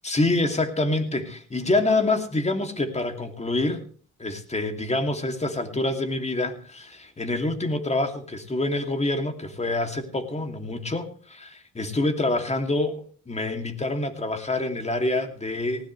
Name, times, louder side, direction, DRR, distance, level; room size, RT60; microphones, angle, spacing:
voice 1, 0.0-3.8 4.2-15.9, left 2 dB, 20° left, 7 dB, 2.6 m, -26 dB
19.0 x 17.0 x 3.2 m, 0.43 s
cardioid pair, 90°, 30 cm